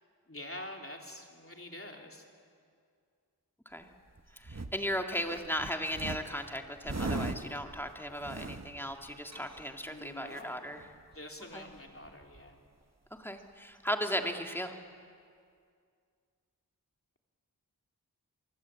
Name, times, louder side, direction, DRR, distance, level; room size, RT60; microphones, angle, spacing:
voice 1, 0.3-2.2 9.8-10.6 11.1-12.6, left 1 dB, 35° left, 2 dB, 3.4 m, -46 dB
sound 1, 3.9-4.9 5.2-9.9 10.3-10.4 10.7-11.1 11.4-11.5 11.7-12.5 13.4-13.5, right 2 dB, 45° right, 1.4 m, -40 dB
voice 2, 4.3-10.8 11.5-11.7 13.1-14.8, equal, 5° left, 4 dB, 2.1 m, -36 dB
25.0 x 23.5 x 8.4 m, 2.2 s
wide cardioid pair, 45°, 38 cm